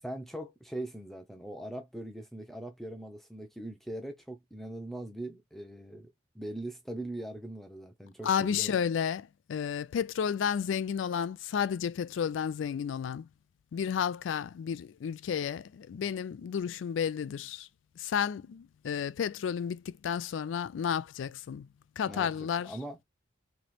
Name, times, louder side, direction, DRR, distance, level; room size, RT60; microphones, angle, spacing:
voice 1, 0.0-8.8 22.1-22.3 22.6-23.0, right 1 dB, ahead, 0.6 m, -41 dB
voice 2, 8.2-13.3 13.7-17.7 18.0-21.7 22.0-22.8, left 7 dB, 80° left, 0.3 m, -32 dB
3.1 x 3.0 x 4.2 m
head